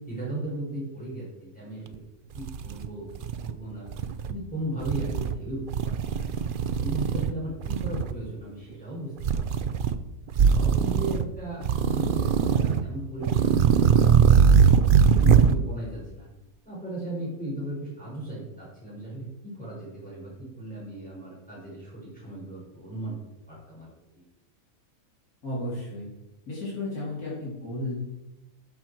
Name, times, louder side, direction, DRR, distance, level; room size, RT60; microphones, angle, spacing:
voice 1, 0.1-2.0 2.3-3.1 3.4-3.9 4.3-6.3 6.8-9.8 10.4-14.5 15.2-16.3 16.6-23.2 23.5-24.2, right 1 dB, 5° left, -7 dB, 3.9 m, -37 dB
sound 1, 1.9-2.0 2.4-3.5 3.9-4.3 4.8-5.4 5.7-7.3 7.6-8.1 9.2-10.0 10.3-11.3 11.6-12.8 13.2-15.6, right 7 dB, 60° right, 0.5 m, -21 dB
voice 2, 15.2-15.5 25.4-26.1 26.5-28.0, left 1 dB, 80° left, -7 dB, 3.3 m, -32 dB
12.0 x 6.2 x 4.5 m, 0.95 s
omnidirectional pair, 1.5 m